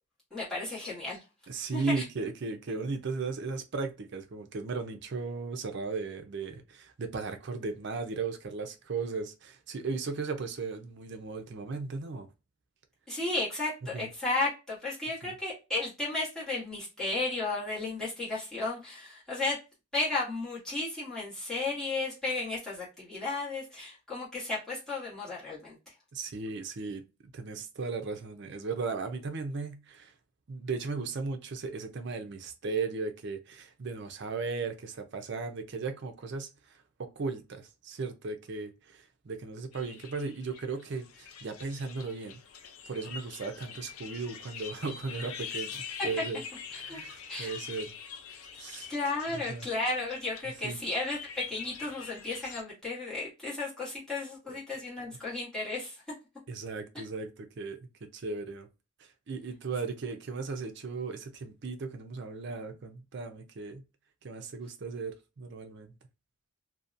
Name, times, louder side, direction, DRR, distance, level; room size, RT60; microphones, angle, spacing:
voice 1, 0.3-1.2 1.7-2.0 13.1-19.6 19.9-25.9 46.0-46.1 46.7-47.0 47.3-47.5 48.9-51.2 51.5-56.0, left 2 dB, ahead, 1.1 m, -34 dB
voice 2, 1.5-12.3 13.9-14.1 15.2-15.3 26.1-30.1 30.5-42.4 42.9-46.4 46.7-47.9 48.6-48.9 49.3-49.7 50.6-50.8 54.5-54.6 56.5-58.7 59.3-63.8 64.2-65.9, right 4 dB, 50° right, 0.4 m, -36 dB
sound 1, 39.7-52.6, left 7 dB, 80° left, 0.4 m, -44 dB
2.7 x 2.1 x 2.4 m
head